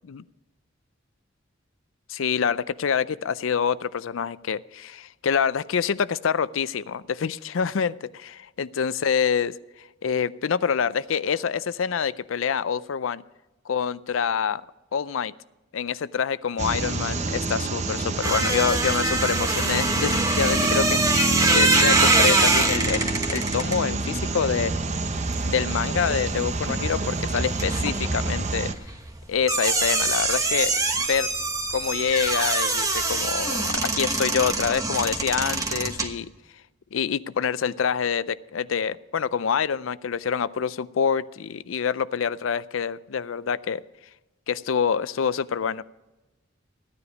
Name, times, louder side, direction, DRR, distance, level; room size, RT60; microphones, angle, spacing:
voice 1, 2.1-13.2 13.7-14.6 14.9-15.3 15.7-24.7 25.4-28.7 29.3-31.3 31.7-36.3 36.9-43.8 44.5-45.8, left 7 dB, 90° left, 17 dB, 0.5 m, -26 dB
sound 1, 16.6-28.7, right 2 dB, 35° right, 0.8 m, -27 dB
sound 2, 18.2-26.3 26.6-36.1, right 3 dB, 15° right, 1.2 m, -24 dB
15.0 x 9.8 x 5.1 m, 1.1 s
head